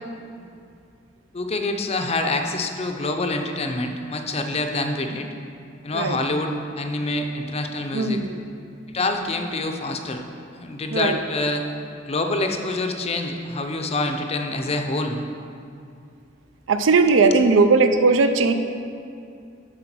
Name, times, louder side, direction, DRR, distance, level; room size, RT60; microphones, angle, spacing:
voice 1, 1.3-5.3 5.8-8.2 8.9-10.2 10.6-11.6 12.0-15.3, left 2 dB, 35° left, 5 dB, 0.6 m, -26 dB
voice 2, 7.9-8.4 10.9-11.2 16.7-18.5, right 4 dB, 75° right, 8 dB, 0.5 m, -18 dB
7.9 x 4.6 x 6.0 m, 2.4 s
head